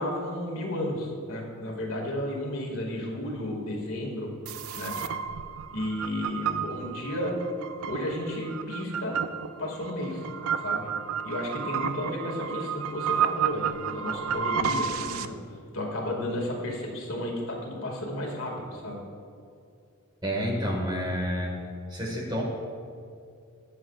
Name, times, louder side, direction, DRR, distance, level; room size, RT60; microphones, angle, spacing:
voice 1, 0.0-4.3 4.7-5.0 5.7-7.4 7.8-9.2 9.6-10.2 10.6-10.9 11.2-15.4 15.7-19.0, left 1 dB, 70° left, 0 dB, 2.2 m, -33 dB
sound 1, 4.5-15.3, right 7 dB, 80° right, 0.5 m, -31 dB
voice 2, 20.2-21.6 21.9-22.4, equal, 20° right, -1 dB, 1.8 m, -29 dB
22.0 x 7.7 x 2.4 m, 2.4 s
head